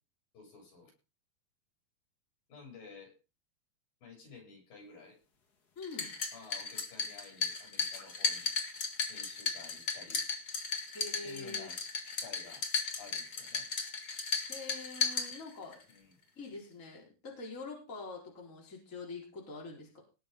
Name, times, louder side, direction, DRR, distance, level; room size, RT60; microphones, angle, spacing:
voice 1, 0.3-0.9 2.5-3.1 4.0-5.2 6.3-8.6 9.1-10.2 11.2-11.8 12.1-12.7 13.0-13.7 15.9-16.2, left 4 dB, 70° left, 0 dB, 9.0 m, -53 dB
sound 1, 5.8-15.8, left 4 dB, 35° left, 1.7 m, -36 dB
voice 2, 5.8-6.1 10.9-11.7 14.5-15.8 16.4-20.0, left 3 dB, 20° left, -2 dB, 4.4 m, -45 dB
19.0 x 7.0 x 5.3 m, 0.32 s
omnidirectional pair, 4.2 m